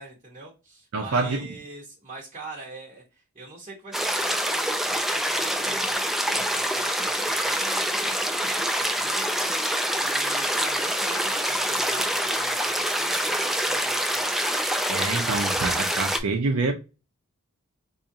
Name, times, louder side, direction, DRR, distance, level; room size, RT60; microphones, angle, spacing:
voice 1, 0.0-14.3, right 3 dB, 30° right, 1.0 m, -44 dB
voice 2, 0.9-1.5 14.9-16.7, right 3 dB, 75° right, 0.6 m, -26 dB
sound 1, 3.9-16.2, equal, ahead, 0.3 m, -26 dB
4.8 x 2.4 x 2.7 m
head